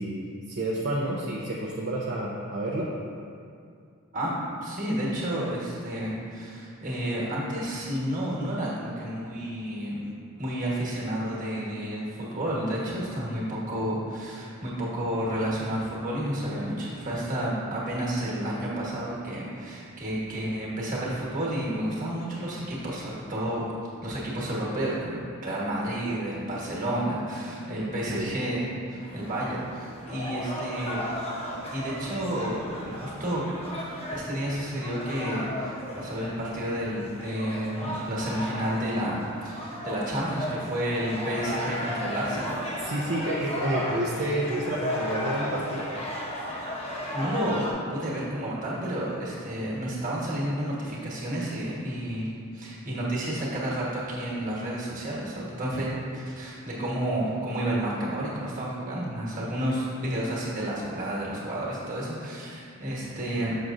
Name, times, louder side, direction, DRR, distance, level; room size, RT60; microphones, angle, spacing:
voice 1, 0.0-2.9 27.7-28.3 42.8-45.9, right 1 dB, 55° right, -4 dB, 0.5 m, -30 dB
voice 2, 4.6-10.1 10.4-23.6 24.0-31.0 31.7-33.4 33.8-42.6 47.1-52.3 52.5-63.6, right 1 dB, 35° right, -6 dB, 1.3 m, -31 dB
sound 1, 29.0-47.7, equal, 25° left, 0.8 m, -35 dB
6.3 x 6.1 x 2.6 m, 2.3 s
head